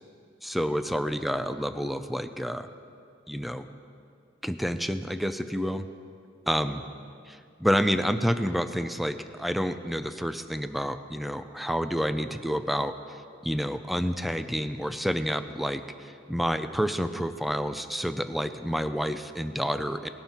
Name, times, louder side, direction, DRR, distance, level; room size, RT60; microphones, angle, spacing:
voice 1, 0.4-2.7 3.3-3.7 4.4-5.8 6.5-6.8 7.3-13.2 13.4-20.1, equal, ahead, 10 dB, 0.5 m, -29 dB
18.5 x 11.0 x 4.5 m, 2.3 s
head